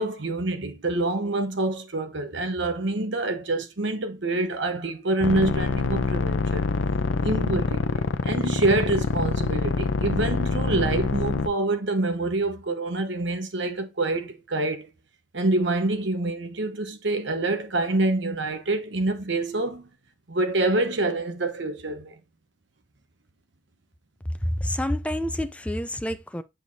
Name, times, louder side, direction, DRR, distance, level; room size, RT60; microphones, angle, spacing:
voice 1, 0.0-6.7 7.2-7.8 8.2-14.9 15.3-19.9 20.3-22.2, right 2 dB, 65° right, 1.1 m, -26 dB
sound 1, 5.2-11.5, left 3 dB, 70° left, 0.6 m, -25 dB
voice 2, 24.4-26.4, left 1 dB, 5° left, 0.5 m, -28 dB
8.0 x 4.7 x 2.7 m
head